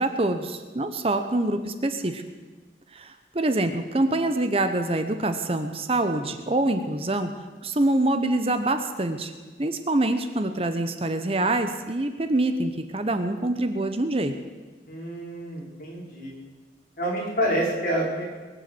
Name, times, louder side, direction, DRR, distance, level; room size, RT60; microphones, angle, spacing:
voice 1, 0.0-2.2 2.9-7.3 7.6-9.3 9.6-14.3, right 2 dB, 35° right, 8 dB, 0.9 m, -25 dB
voice 2, 14.9-16.3 17.0-18.3, right 1 dB, 50° left, -3 dB, 4.9 m, -28 dB
21.5 x 8.0 x 7.8 m, 1.3 s
head